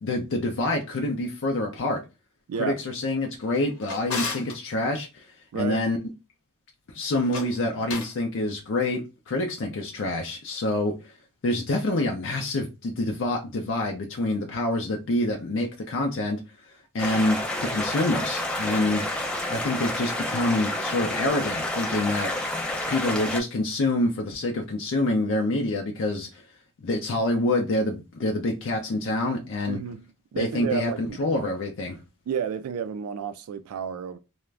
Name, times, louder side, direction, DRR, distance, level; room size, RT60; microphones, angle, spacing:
voice 1, 0.0-2.0 2.6-6.0 6.9-11.1 11.4-19.0 19.5-22.3 22.9-26.4 26.8-29.8 30.4-32.0, left 2 dB, 60° left, 0.5 m, -27 dB
Drawer open or close, 3.4-4.6 7.2-8.2, left 4 dB, 90° left, 0.9 m, -34 dB
voice 2, 5.5-5.8 29.7-30.0 30.3-31.2 32.3-34.2, right 7 dB, 80° right, 0.3 m, -31 dB
sound 1, 17.0-23.4, left 1 dB, 5° left, 0.4 m, -29 dB
2.4 x 2.1 x 3.2 m
head